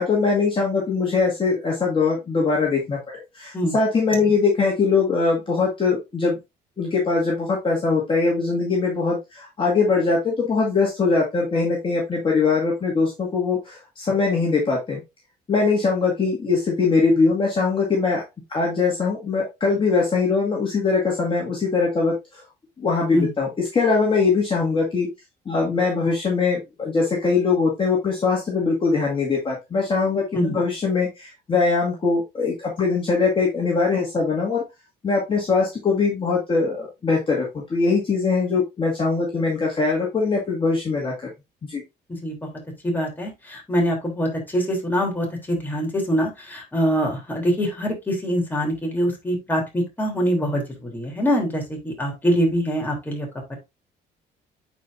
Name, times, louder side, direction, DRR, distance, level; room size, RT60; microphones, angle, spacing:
voice 1, 0.0-3.0 3.3-6.4 6.8-15.0 15.5-18.2 18.5-22.4 22.8-25.1 25.5-34.6 35.0-41.1 41.6-41.8, left 4 dB, 30° left, -3 dB, 2.1 m, -22 dB
voice 2, 42.8-53.6, equal, 10° left, -1 dB, 3.3 m, -24 dB
9.2 x 4.5 x 2.6 m, 0.22 s
cardioid pair, 110°, 17 cm